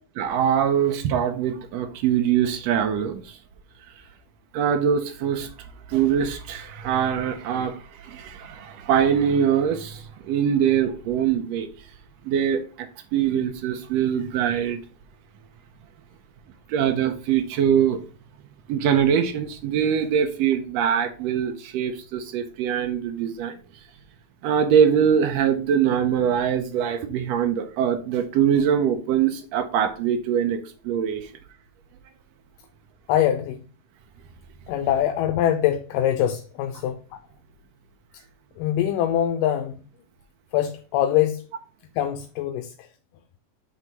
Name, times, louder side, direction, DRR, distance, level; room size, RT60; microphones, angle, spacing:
voice 1, 0.2-3.4 4.5-5.5 5.9-11.7 12.2-14.8 16.7-18.0 18.7-23.5 24.4-31.3, right 8 dB, 85° right, 1.5 m, -23 dB
voice 2, 33.1-33.6 34.7-37.0 38.6-39.8 40.5-41.4 42.0-42.9, left 11 dB, 85° left, 2.2 m, -23 dB
7.7 x 3.4 x 5.3 m
omnidirectional pair, 3.8 m